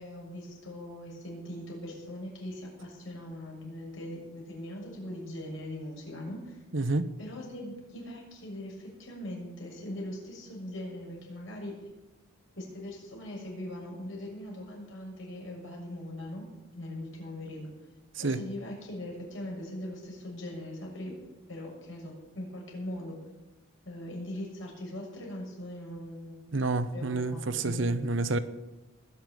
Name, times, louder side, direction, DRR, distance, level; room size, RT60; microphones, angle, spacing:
voice 1, 0.0-6.6 7.2-11.8 12.6-16.5 16.7-17.7 18.2-21.2 21.5-23.2 23.8-26.4 26.9-27.9, left 1 dB, 65° left, 6.8 m, -40 dB
voice 2, 6.7-7.1 18.2-18.4 26.5-28.4, right 3 dB, 60° right, 0.9 m, -28 dB
20.0 x 6.8 x 9.2 m
head